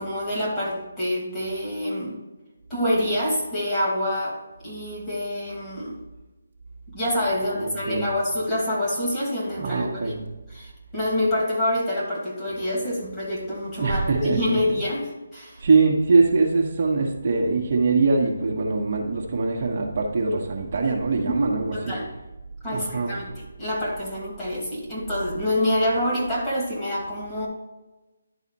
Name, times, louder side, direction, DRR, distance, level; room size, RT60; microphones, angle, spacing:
voice 1, 0.0-2.2 2.7-4.4 4.6-6.0 6.9-10.2 10.5-15.6 21.2-22.0 22.6-23.3 23.6-27.5, left 1 dB, 15° left, -7 dB, 2.4 m, -26 dB
voice 2, 7.4-8.1 9.6-10.2 13.8-14.8 15.6-21.9 22.7-23.2, right 4 dB, 45° right, -1 dB, 1.2 m, -23 dB
11.0 x 4.1 x 4.0 m, 1.1 s
figure-of-eight pair, 160°, 0 cm